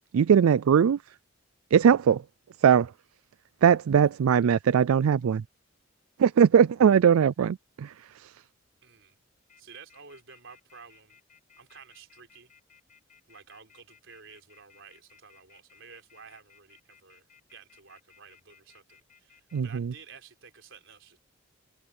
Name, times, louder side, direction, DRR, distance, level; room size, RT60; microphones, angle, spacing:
voice 1, 0.1-1.0 1.7-2.2 2.6-2.9 3.6-5.4 6.2-8.3 19.5-19.9, right 7 dB, 80° right, 0.3 m, -21 dB
voice 2, 8.8-9.2 9.6-11.2 11.6-12.5 13.3-17.2 17.5-21.2, right 5 dB, 60° right, 4.6 m, -52 dB
sound 1, 9.5-19.6, left 7 dB, 40° left, 5.1 m, -59 dB
head